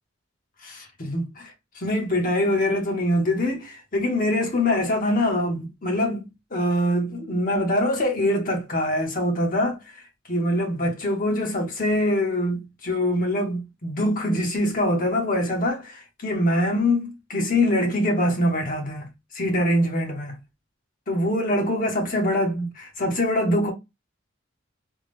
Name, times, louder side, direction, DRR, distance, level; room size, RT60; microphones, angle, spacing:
voice 1, 0.6-10.0 10.3-20.4 21.1-23.7, left 1 dB, 45° left, 1.2 m, -24 dB
3.6 x 2.3 x 3.3 m
head